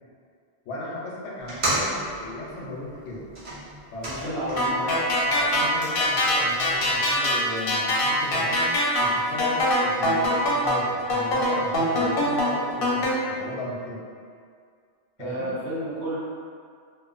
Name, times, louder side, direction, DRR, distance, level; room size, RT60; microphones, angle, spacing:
voice 1, 0.7-3.3 3.9-4.4 4.7-14.0 15.2-15.5, left 1 dB, 85° left, -4 dB, 0.9 m, -36 dB
sound 1, 1.4-4.8 5.1-7.1, right 1 dB, 40° right, 0.5 m, -34 dB
voice 2, 4.0-5.0 15.2-16.2, right 1 dB, 85° right, -8 dB, 1.1 m, -31 dB
sound 2, 4.6-13.1, left 1 dB, 60° left, 0.7 m, -23 dB
2.9 x 2.2 x 2.4 m, 2.2 s
omnidirectional pair, 1.2 m